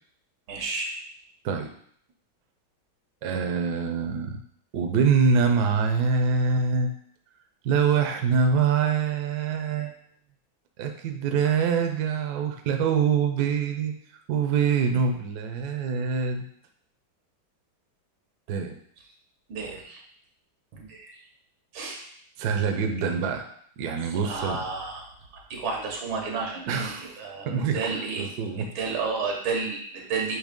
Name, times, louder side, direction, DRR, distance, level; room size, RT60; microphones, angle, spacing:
voice 1, 0.5-0.9 19.5-20.0 20.7-21.1 21.7-22.1 24.2-25.1 25.5-28.3 28.6-30.4, right 4 dB, 85° right, 1 dB, 2.0 m, -31 dB
voice 2, 3.2-4.4 4.7-6.9 7.6-9.9 10.8-16.4 18.5-18.8 22.4-23.5 23.8-24.6 26.7-27.2 27.4-28.7, right 5 dB, 65° right, 4 dB, 1.1 m, -25 dB
6.4 x 2.8 x 5.1 m, 0.62 s
omnidirectional pair, 2.2 m